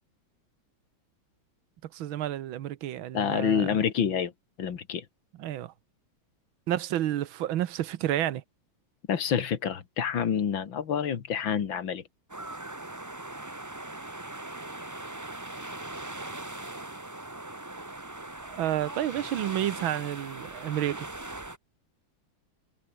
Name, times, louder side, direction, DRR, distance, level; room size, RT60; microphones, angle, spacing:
voice 1, 1.9-3.8 5.4-5.7 6.7-8.4 18.6-21.1, right 12 dB, 85° right, 1.8 m, -30 dB
voice 2, 3.1-4.3 4.6-5.0 9.1-12.0, left 8 dB, 75° left, 2.5 m, -27 dB
sound 1, 12.3-21.6, right 2 dB, 10° right, 1.1 m, -40 dB
omnidirectional pair, 2.1 m